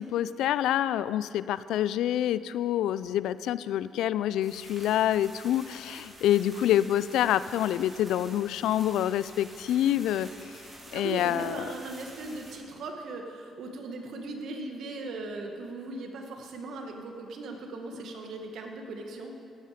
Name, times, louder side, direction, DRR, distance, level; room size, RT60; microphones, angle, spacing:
voice 1, 0.0-10.3 10.9-11.7, left 12 dB, 85° left, 16 dB, 0.3 m, -27 dB
sound 1, 4.4-12.6, right 1 dB, 30° right, 3.5 m, -49 dB
voice 2, 10.9-19.3, right 3 dB, 70° right, 3 dB, 1.6 m, -38 dB
16.5 x 8.9 x 5.0 m, 2.5 s
cardioid pair, 90°, 0 cm